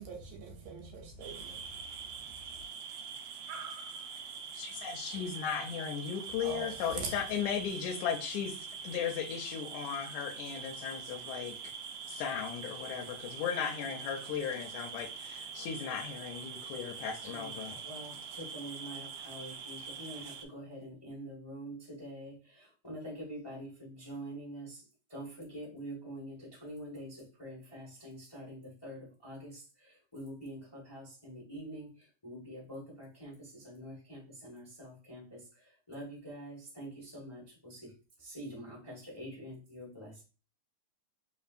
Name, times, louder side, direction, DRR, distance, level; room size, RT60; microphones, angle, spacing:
voice 1, 0.0-2.7 6.4-7.1, right 5 dB, 70° right, 1.9 m, -44 dB
sound 1, 1.2-20.4, right 6 dB, 90° right, 1.3 m, -44 dB
voice 2, 4.5-11.7 12.1-17.8, left 8 dB, 80° left, 1.9 m, -36 dB
voice 3, 17.2-40.2, equal, 35° left, 0.3 m, -46 dB
4.4 x 3.4 x 2.4 m
omnidirectional pair, 3.3 m